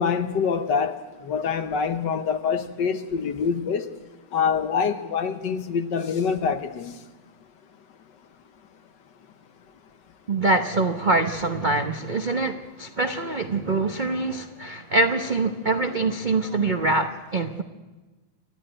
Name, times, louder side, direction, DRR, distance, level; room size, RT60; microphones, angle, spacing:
voice 1, 0.0-3.9 4.3-6.9, left 6 dB, 60° left, 9 dB, 1.5 m, -25 dB
voice 2, 10.3-17.6, right 3 dB, 65° right, 6 dB, 0.4 m, -24 dB
28.0 x 11.5 x 8.9 m, 1.2 s
omnidirectional pair, 2.3 m